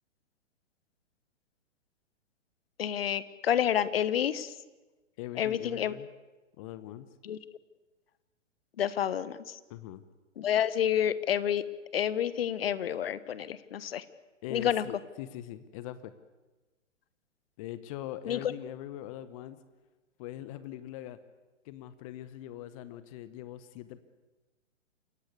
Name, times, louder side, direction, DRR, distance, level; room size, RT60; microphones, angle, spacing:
voice 1, 2.8-4.5 5.4-5.9 7.2-7.4 8.8-9.6 10.4-11.6 11.9-14.0 14.5-14.8 18.3-18.4, left 10 dB, 50° left, 17 dB, 1.3 m, -29 dB
voice 2, 5.2-6.1 6.6-7.1 9.7-10.0 14.4-16.1 17.6-19.6 20.2-21.2 21.6-24.0, left 13 dB, 25° left, 14 dB, 0.9 m, -42 dB
28.0 x 16.5 x 8.5 m, 1.2 s
figure-of-eight pair, 120°, 37 cm